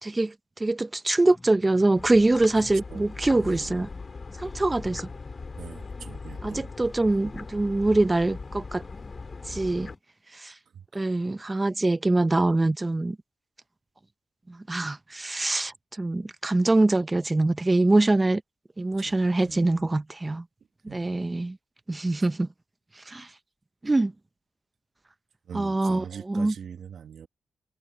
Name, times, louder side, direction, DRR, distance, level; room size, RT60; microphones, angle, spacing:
voice 1, 0.0-3.9 4.4-5.1 6.4-8.8 9.5-9.9 10.3-10.5 10.9-13.2 14.5-18.4 18.8-20.4 20.8-21.6 21.9-22.5 23.1-23.3 23.8-24.1 25.5-26.5, right 2 dB, 20° right, 0.6 m, -24 dB
sound 1, 1.2-10.0, left 2 dB, 15° left, 4.6 m, -51 dB
sound 2, 2.0-10.0, left 4 dB, 35° left, 2.0 m, -40 dB
voice 2, 3.4-3.8 5.5-6.7 10.7-11.1 19.0-19.9 20.9-21.1 25.4-27.3, right 8 dB, 65° right, 1.5 m, -42 dB
cardioid pair, 115°, 0 cm